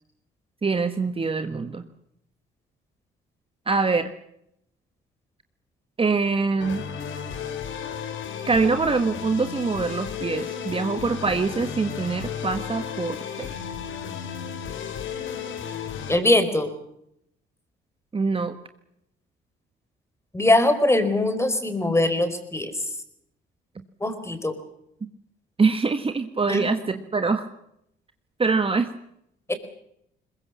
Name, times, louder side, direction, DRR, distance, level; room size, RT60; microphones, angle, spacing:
voice 1, 0.6-1.8 3.7-4.1 6.0-6.8 8.5-13.5 18.1-18.5 25.6-27.5 28.4-28.9, right 4 dB, 25° right, 9 dB, 1.4 m, -24 dB
sound 1, 6.6-16.2, left 7 dB, 75° left, 3.1 m, -33 dB
voice 2, 16.1-16.7 20.3-22.7 24.0-24.5 26.5-26.7 29.5-29.6, left 1 dB, 15° left, 9 dB, 4.5 m, -21 dB
22.0 x 21.0 x 7.3 m, 0.76 s
cardioid pair, 90°, 20 cm